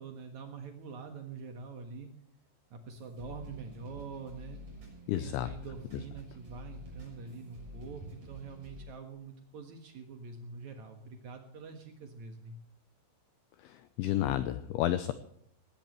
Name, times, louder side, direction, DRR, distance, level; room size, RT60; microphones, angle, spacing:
voice 1, 0.0-2.1 2.7-4.6 5.2-12.6, right 4 dB, 75° right, 4 dB, 1.7 m, -45 dB
sound 1, 2.9-8.8, right 1 dB, 35° right, 8.0 m, -49 dB
voice 2, 5.1-5.5 13.6-15.1, left 13 dB, 80° left, 11 dB, 2.8 m, -31 dB
19.5 x 16.5 x 3.2 m, 0.68 s
omnidirectional pair, 5.9 m